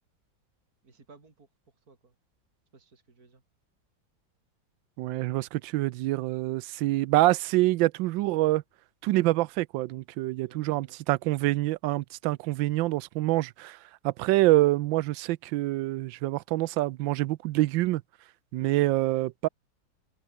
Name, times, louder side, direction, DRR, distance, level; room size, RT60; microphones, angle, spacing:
voice 1, 0.8-2.2 2.7-3.4 10.3-11.0, right 4 dB, 50° right, 4.1 m, -58 dB
voice 2, 5.0-8.6 9.0-13.8 14.0-18.0 18.5-19.5, right 17 dB, 90° right, 1.3 m, -26 dB
omnidirectional pair, 2.0 m